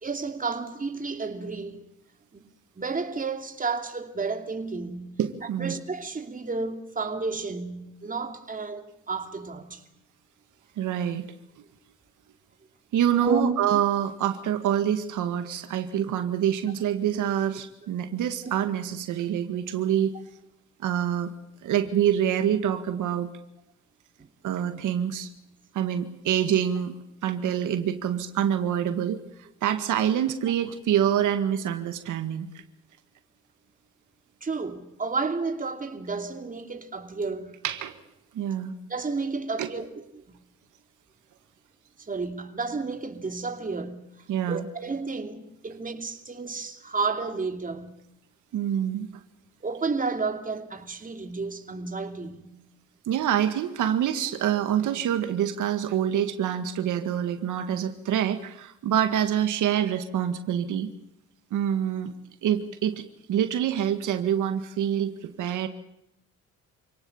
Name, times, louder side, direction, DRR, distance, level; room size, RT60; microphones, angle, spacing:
voice 1, 0.0-1.8 2.3-2.4 2.8-5.2 5.6-9.8 13.2-13.8 24.2-24.3 34.4-37.6 38.9-39.9 40.1-40.4 42.0-44.1 44.5-48.0 49.6-52.6, right 4 dB, 25° right, 2.9 m, -31 dB
voice 2, 5.2-5.7 10.8-11.3 12.9-20.1 20.8-21.3 21.6-23.3 24.4-25.3 25.7-26.9 27.2-29.2 29.6-32.6 37.6-38.0 38.3-38.7 39.6-39.7 44.3-44.6 48.5-49.2 53.1-60.9 61.5-62.1 62.4-63.0 63.3-65.7, right 10 dB, 80° right, 1.9 m, -26 dB
27.5 x 18.0 x 7.2 m
cardioid pair, 90°, 30 cm